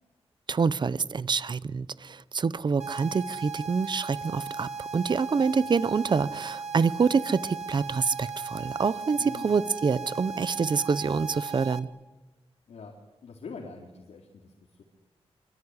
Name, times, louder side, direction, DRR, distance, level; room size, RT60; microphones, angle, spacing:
voice 1, 0.5-11.9, right 5 dB, 45° right, 17 dB, 0.9 m, -26 dB
sound 1, 2.8-11.8, right 5 dB, 80° right, 2.2 m, -37 dB
voice 2, 9.2-9.5 12.7-12.9 13.2-14.5 14.8-14.9, left 4 dB, 85° left, 0 dB, 4.0 m, -43 dB
24.5 x 24.5 x 9.8 m, 1.1 s
wide cardioid pair, 155°, 11 cm